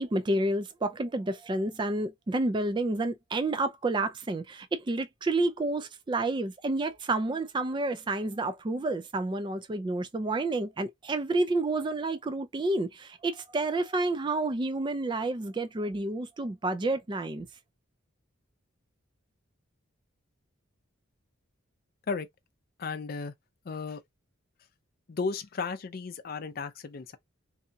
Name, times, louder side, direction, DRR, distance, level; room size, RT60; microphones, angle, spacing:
voice 1, 0.0-17.5, right 2 dB, 25° right, 0.3 m, -30 dB
voice 2, 22.8-23.3 23.7-24.0 25.1-27.2, left 4 dB, 45° left, 0.4 m, -34 dB
2.7 x 2.6 x 2.2 m
head